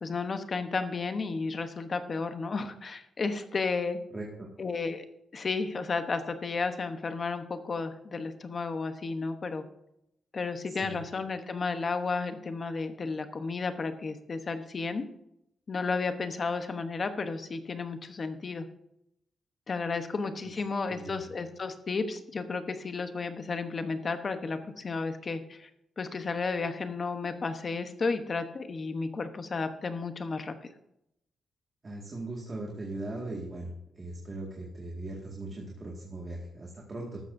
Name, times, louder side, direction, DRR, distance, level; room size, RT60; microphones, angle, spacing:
voice 1, 0.0-4.0 4.6-5.0 5.3-9.6 10.3-15.0 15.7-18.7 19.7-25.7 26.0-30.5, left 4 dB, 35° left, 8 dB, 1.0 m, -33 dB
voice 2, 4.1-4.5 10.6-11.0 20.4-20.5 20.9-21.2 31.8-33.7 34.0-37.2, right 2 dB, 25° right, -2 dB, 1.9 m, -39 dB
14.0 x 12.5 x 2.7 m, 0.81 s
wide cardioid pair, 155°, 0 cm